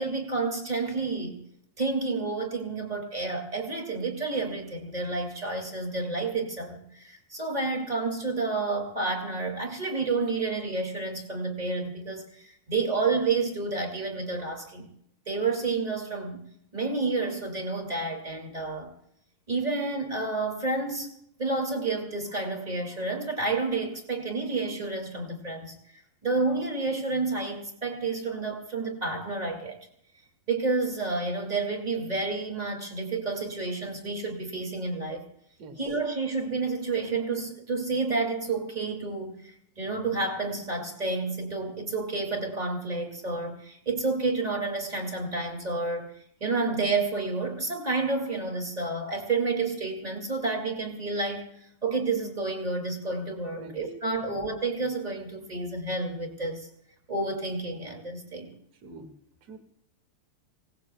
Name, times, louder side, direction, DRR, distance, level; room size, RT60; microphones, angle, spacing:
voice 1, 0.0-1.4 1.8-14.9 15.2-16.4 16.7-18.9 19.5-29.8 30.5-35.2 35.8-46.1 46.4-56.7 57.1-58.5, right 3 dB, 25° right, 2 dB, 0.9 m, -30 dB
voice 2, 58.8-59.1 59.5-59.6, right 2 dB, 45° right, 4 dB, 2.5 m, -45 dB
27.0 x 18.5 x 2.3 m, 0.73 s
omnidirectional pair, 4.8 m